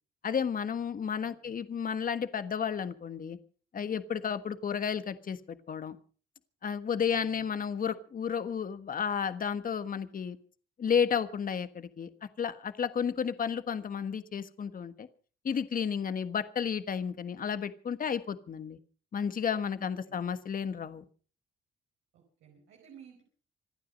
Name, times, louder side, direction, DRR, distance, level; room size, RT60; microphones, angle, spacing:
voice 1, 0.2-3.4 3.7-6.0 6.6-10.4 10.8-12.1 12.4-15.1 15.4-18.8 19.1-21.0, left 7 dB, 45° left, 11 dB, 1.4 m, -32 dB
voice 2, 1.2-1.6 7.1-7.5 19.8-20.2 22.1-23.2, right 7 dB, 85° right, 0 dB, 4.8 m, -56 dB
27.0 x 9.4 x 5.3 m, 0.41 s
cardioid pair, 90°, 20 cm